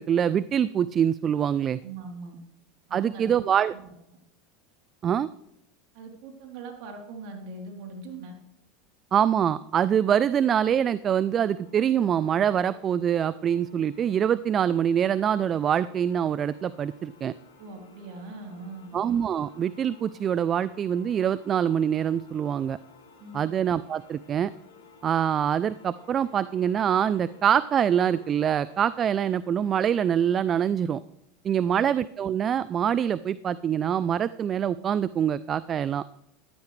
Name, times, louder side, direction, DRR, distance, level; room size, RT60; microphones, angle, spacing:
voice 1, 0.0-1.8 2.9-3.7 5.0-5.3 9.1-17.3 18.9-22.8 23.3-24.5 25.0-31.0 31.4-36.0, right 9 dB, 35° right, 17 dB, 0.4 m, -24 dB
voice 2, 1.8-2.4 2.9-3.3 3.7-3.9 5.9-8.3 17.6-19.0 23.2-23.5 31.5-31.8, right 3 dB, 60° right, 1 dB, 3.4 m, -41 dB
sound 1, 10.2-29.1, left 4 dB, 85° left, 3.6 m, -55 dB
14.5 x 12.0 x 3.3 m, 0.81 s
hypercardioid pair, 100°, 0 cm